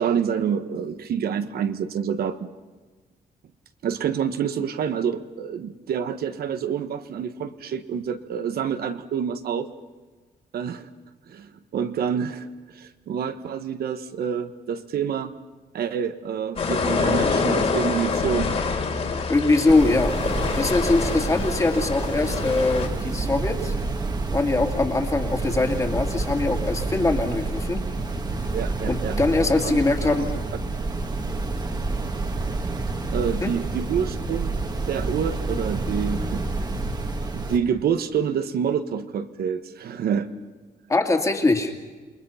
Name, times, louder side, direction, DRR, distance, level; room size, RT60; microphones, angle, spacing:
voice 1, 0.0-2.4 3.8-9.7 10.5-10.9 11.3-15.3 15.7-18.7 28.5-29.2 29.6-30.3 33.1-34.6 34.9-36.4 37.3-40.3, right 7 dB, 70° right, 9 dB, 1.4 m, -27 dB
sound 1, 16.6-22.9, left 4 dB, 40° left, 3.3 m, -26 dB
voice 2, 19.3-20.1 20.5-23.7 24.3-27.8 28.9-30.3 33.4-33.5 40.9-41.7, left 2 dB, 20° left, 4 dB, 2.4 m, -22 dB
sound 2, 19.7-37.6, right 3 dB, 25° right, 1.7 m, -28 dB
28.5 x 22.5 x 5.8 m, 1.3 s
wide cardioid pair, 170°, 17 cm